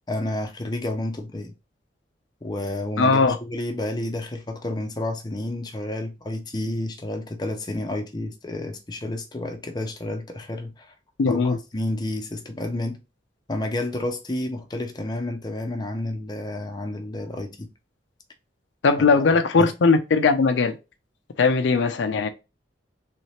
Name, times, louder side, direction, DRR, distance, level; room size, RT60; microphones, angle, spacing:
voice 1, 0.1-1.5 2.4-10.9 11.3-13.0 13.5-17.7 19.6-19.7, left 1 dB, 20° left, 0.5 m, -30 dB
voice 2, 3.0-3.4 11.2-11.6 18.8-20.8 21.4-22.3, left 4 dB, 80° left, 0.4 m, -19 dB
3.2 x 2.8 x 3.1 m
head